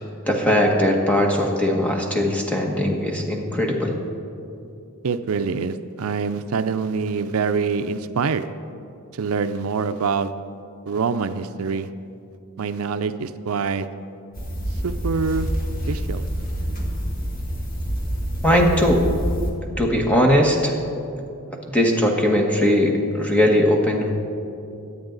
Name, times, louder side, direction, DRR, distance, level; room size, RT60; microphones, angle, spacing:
voice 1, 0.3-3.9 18.4-19.1 19.8-20.8 21.7-24.1, left 1 dB, 5° left, 0 dB, 1.4 m, -19 dB
voice 2, 5.0-8.5 9.1-10.3 10.9-11.9 12.6-13.9 14.8-15.5 15.9-16.2, right 5 dB, 75° right, 10 dB, 0.5 m, -25 dB
sound 1, 14.3-19.5, equal, 40° left, 1.9 m, -27 dB
23.0 x 8.9 x 3.9 m, 2.6 s
head